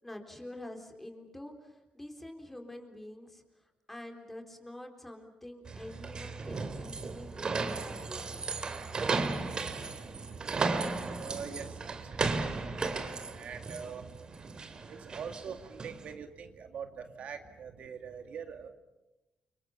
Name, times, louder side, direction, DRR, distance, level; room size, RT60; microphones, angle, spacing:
voice 1, 0.0-8.4, left 1 dB, 10° left, 4 dB, 3.8 m, -47 dB
sound 1, 5.7-16.1, right 4 dB, 35° right, 2.5 m, -35 dB
voice 2, 9.5-18.7, right 6 dB, 60° right, 6 dB, 2.2 m, -45 dB
30.0 x 25.5 x 7.1 m, 1.0 s
cardioid pair, 140°, 2 cm